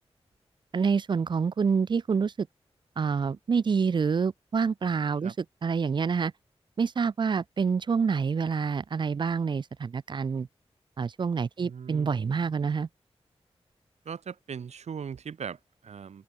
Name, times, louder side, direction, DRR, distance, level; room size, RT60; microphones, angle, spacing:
voice 1, 0.7-2.5 3.0-5.3 5.6-6.3 6.8-10.5 11.0-12.9, right 5 dB, 45° right, 0.4 m, -27 dB
voice 2, 11.6-12.5 14.0-16.2, right 7 dB, 90° right, 3.3 m, -40 dB
open air
cardioid pair, 50°, 11 cm